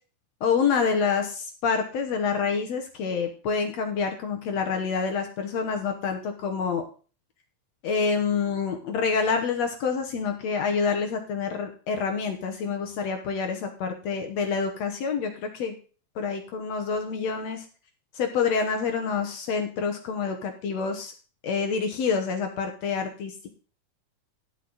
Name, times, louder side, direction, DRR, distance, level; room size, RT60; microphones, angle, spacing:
voice 1, 0.4-6.8 7.8-15.7 16.1-17.6 18.1-21.1 21.4-23.5, left 5 dB, 65° left, 4 dB, 1.9 m, -27 dB
12.0 x 8.3 x 4.0 m, 0.38 s
omnidirectional pair, 3.9 m